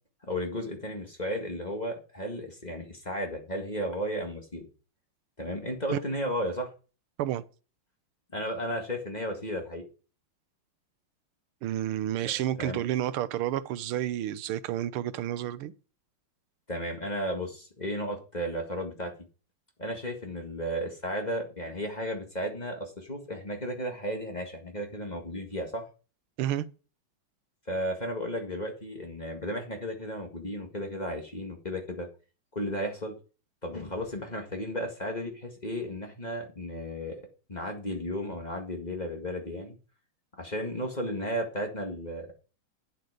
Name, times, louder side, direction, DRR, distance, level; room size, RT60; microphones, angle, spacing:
voice 1, 0.3-4.7 5.4-6.7 8.3-9.8 12.6-12.8 16.7-19.1 19.8-25.8 27.7-32.1 32.5-33.1 33.6-39.8 40.4-42.3, equal, 20° left, 1.7 m, -34 dB
voice 2, 11.6-15.7 26.4-26.7, right 12 dB, 90° right, 1.6 m, -30 dB
9.3 x 7.9 x 5.0 m
omnidirectional pair, 2.4 m